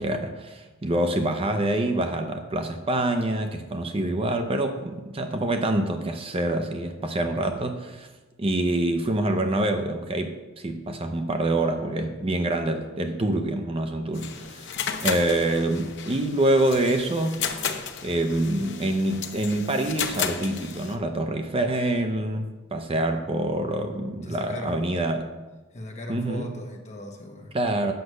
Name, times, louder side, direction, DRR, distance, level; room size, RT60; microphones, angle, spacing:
voice 1, 0.0-8.1 8.4-14.7 15.0-17.4 18.0-25.3 26.1-26.5 27.5-27.9, right 1 dB, 25° right, 6 dB, 0.6 m, -26 dB
sound 1, 14.1-21.0, left 7 dB, 55° left, 0.8 m, -33 dB
voice 2, 24.2-24.9 25.7-27.5, left 1 dB, 35° left, 2 dB, 1.4 m, -38 dB
8.0 x 6.2 x 6.4 m, 1.2 s
head